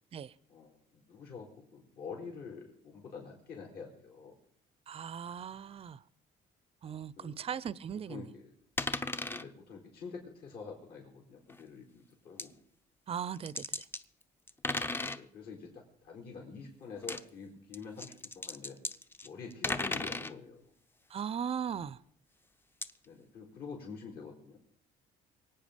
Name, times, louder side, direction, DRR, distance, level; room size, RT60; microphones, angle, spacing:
voice 1, 0.5-4.3 7.2-7.4 7.7-7.8 8.1-8.5 9.3-12.5 15.0-18.8 19.2-20.7 23.1-24.6, left 5 dB, 65° left, 0 dB, 4.5 m, -47 dB
voice 2, 4.9-6.0 6.8-8.3 13.1-13.7 21.1-22.0, right 8 dB, 35° right, 20 dB, 0.6 m, -38 dB
sound 1, 8.8-9.4 11.5-11.6 12.4-12.5 13.4-14.0 14.5-15.2 16.9-17.2 17.7-20.3 22.8-22.9, left 2 dB, 15° left, 0.6 m, -35 dB
23.5 x 8.9 x 5.2 m, 0.63 s
cardioid pair, 110°, 17 cm